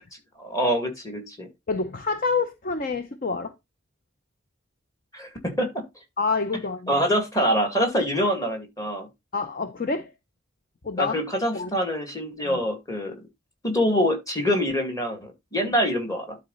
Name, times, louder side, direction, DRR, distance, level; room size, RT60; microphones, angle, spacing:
voice 1, 0.4-1.5 5.1-5.7 6.9-9.1 11.0-13.1 13.6-16.4, equal, 15° left, 2.2 m, -25 dB
voice 2, 1.7-3.5 6.2-6.9 9.3-10.1 10.8-11.2 11.5-11.7 12.4-12.6, left 4 dB, 45° left, 0.7 m, -27 dB
11.5 x 4.1 x 3.9 m
head